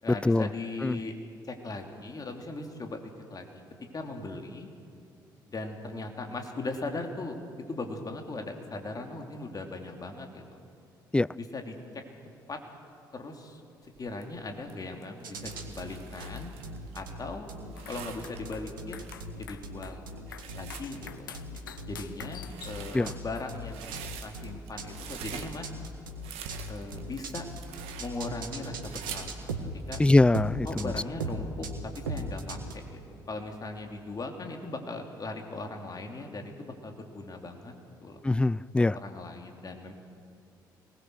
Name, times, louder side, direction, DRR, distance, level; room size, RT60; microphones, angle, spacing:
voice 1, 0.0-1.2 1.4-3.6 3.9-4.7 5.5-7.4 7.7-10.6 11.3-11.8 12.5-12.6 13.1-16.5 16.9-17.5 17.9-19.1 19.4-20.0 20.5-21.4 21.8-25.7 26.7-27.5 28.0-29.5 29.9-30.0 30.6-31.7 31.9-37.7 38.0-38.2 38.9-39.9, left 2 dB, 35° left, 3 dB, 3.2 m, -39 dB
sound 1, 13.8-30.1, right 8 dB, 65° right, 1.7 m, -46 dB
sound 2, 15.2-32.7, right 1 dB, 85° right, 1.5 m, -39 dB
sound 3, 17.7-23.7, left 8 dB, 90° left, 0.7 m, -48 dB
voice 2, 30.0-30.8 38.2-38.9, left 2 dB, 10° left, 21 dB, 0.4 m, -22 dB
25.0 x 19.5 x 6.4 m, 2.4 s
hypercardioid pair, 50°, 11 cm